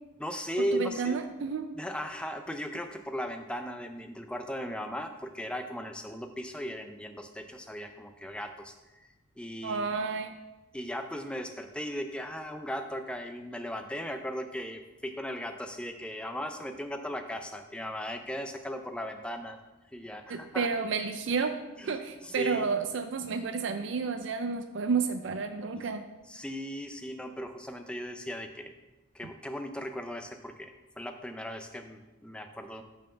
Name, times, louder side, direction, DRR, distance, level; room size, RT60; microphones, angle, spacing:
voice 1, 0.2-1.2 1.8-9.1 9.4-9.9 10.7-19.6 19.9-20.7 21.8-22.0 22.2-22.7 25.7-25.9 26.3-28.7 29.1-32.8, equal, 5° left, 6 dB, 0.4 m, -37 dB
voice 2, 0.7-1.7 9.6-10.3 20.3-21.5 21.8-26.0, right 5 dB, 60° right, 8 dB, 0.4 m, -31 dB
6.2 x 4.2 x 5.6 m, 1.1 s
head